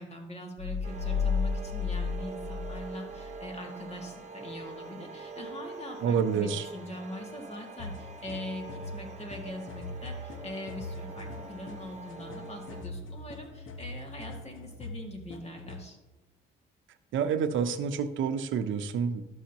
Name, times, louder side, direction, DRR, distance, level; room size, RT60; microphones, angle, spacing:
voice 1, 0.0-16.0, left 1 dB, 30° left, 1 dB, 2.1 m, -42 dB
sound 1, 0.6-3.4, left 5 dB, 60° left, 0.7 m, -32 dB
sound 2, 0.8-12.8, right 4 dB, 35° right, 1.1 m, -44 dB
voice 2, 6.0-6.6 17.1-19.2, right 6 dB, 75° right, 9 dB, 0.7 m, -28 dB
sound 3, 7.8-15.9, left 2 dB, 80° left, 1.0 m, -43 dB
12.5 x 6.3 x 2.9 m, 1.1 s
cardioid pair, 90°, 20 cm